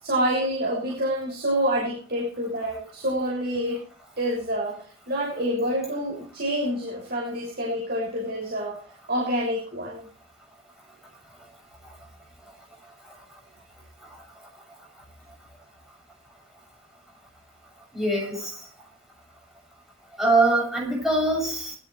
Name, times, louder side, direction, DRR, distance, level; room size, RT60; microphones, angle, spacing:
voice 1, 0.0-3.8 4.2-8.8 9.1-10.1, equal, 45° right, -4 dB, 6.5 m, -27 dB
voice 2, 17.9-18.6 20.2-21.8, right 2 dB, ahead, -3 dB, 7.4 m, -23 dB
20.0 x 14.5 x 3.3 m, 0.42 s
head